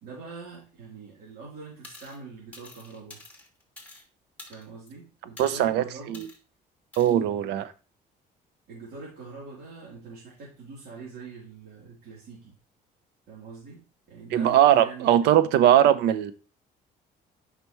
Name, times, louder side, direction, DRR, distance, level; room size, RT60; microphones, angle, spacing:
voice 1, 0.0-3.2 4.5-6.3 7.0-7.5 8.7-12.5 13.3-15.3, right 4 dB, 70° right, -6 dB, 3.5 m, -43 dB
sound 1, 1.8-2.2 2.5-4.0 4.4-4.9 5.4-5.7 6.1-6.4 6.9-7.1, left 2 dB, 10° left, 2.9 m, -47 dB
voice 2, 5.4-6.3 7.0-7.6 14.3-16.3, right 11 dB, 85° right, 13 dB, 0.8 m, -20 dB
8.9 x 5.9 x 3.1 m, 0.35 s
cardioid pair, 110°, 17 cm